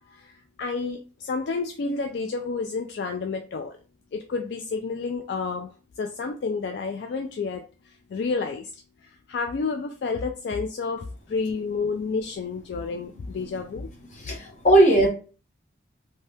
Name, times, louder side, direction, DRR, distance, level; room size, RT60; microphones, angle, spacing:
voice 1, 0.1-3.8 4.1-13.9, left 4 dB, 65° left, 4 dB, 0.3 m, -30 dB
voice 2, 13.4-13.8 14.1-15.1, right 1 dB, 40° left, 0 dB, 0.9 m, -20 dB
2.7 x 2.2 x 3.3 m, 0.36 s
head